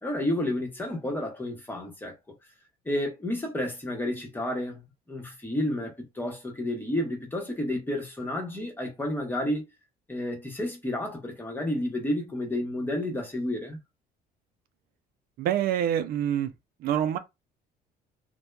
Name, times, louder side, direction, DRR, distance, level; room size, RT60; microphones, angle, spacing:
voice 1, 0.0-2.2 2.8-4.8 5.1-9.7 10.1-13.8, left 1 dB, 10° left, 1.0 m, -31 dB
voice 2, 15.4-16.5 16.8-17.2, right 10 dB, 65° right, 0.4 m, -26 dB
2.7 x 2.2 x 2.2 m
cardioid pair, 110°, 17 cm